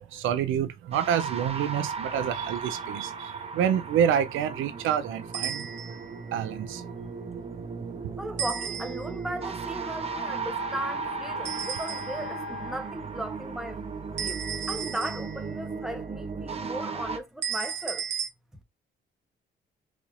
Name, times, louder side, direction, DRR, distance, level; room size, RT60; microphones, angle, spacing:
voice 1, 0.1-5.7 6.3-6.8, right 9 dB, 85° right, 0.5 m, -27 dB
sound 1, 0.9-17.2, right 5 dB, 30° right, 0.7 m, -36 dB
sound 2, 5.3-6.1 8.4-9.3 11.4-12.4 14.2-15.6 17.4-18.3, right 7 dB, 65° right, 0.9 m, -34 dB
voice 2, 8.2-13.8 14.1-18.1, right 1 dB, 5° right, 1.0 m, -37 dB
sound 3, 10.1-12.8, left 9 dB, 45° left, 2.5 m, -41 dB
4.1 x 3.1 x 2.5 m
cardioid pair, 90°, 20 cm